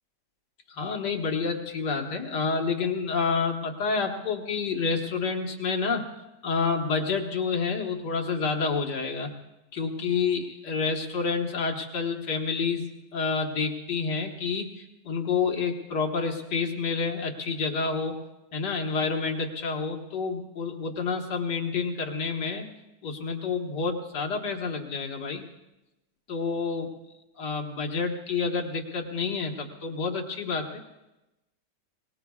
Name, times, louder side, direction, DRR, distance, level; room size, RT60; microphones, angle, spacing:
voice 1, 0.7-6.1 6.4-9.3 9.7-18.2 18.5-22.7 23.0-25.5 26.3-26.9 27.4-30.7, left 5 dB, 75° left, 3 dB, 2.0 m, -29 dB
22.5 x 20.0 x 2.4 m, 0.97 s
omnidirectional pair, 1.9 m